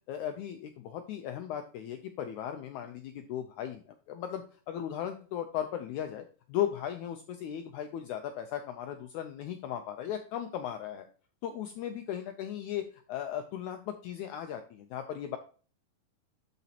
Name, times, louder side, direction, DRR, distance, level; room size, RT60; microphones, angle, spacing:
voice 1, 0.1-11.1 11.4-15.4, left 10 dB, 80° left, 6 dB, 1.7 m, -37 dB
12.0 x 4.2 x 2.8 m, 0.38 s
omnidirectional pair, 4.0 m